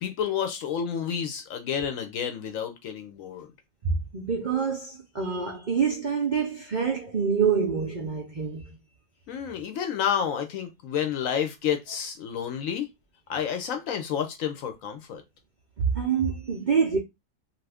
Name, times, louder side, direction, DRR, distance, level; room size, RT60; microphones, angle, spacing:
voice 1, 0.0-3.5 9.3-12.9 13.3-15.2, left 8 dB, 65° left, 0.9 m, -30 dB
voice 2, 3.8-8.8 15.8-17.0, right 6 dB, 75° right, 0.4 m, -26 dB
2.6 x 2.5 x 3.4 m
omnidirectional pair, 1.7 m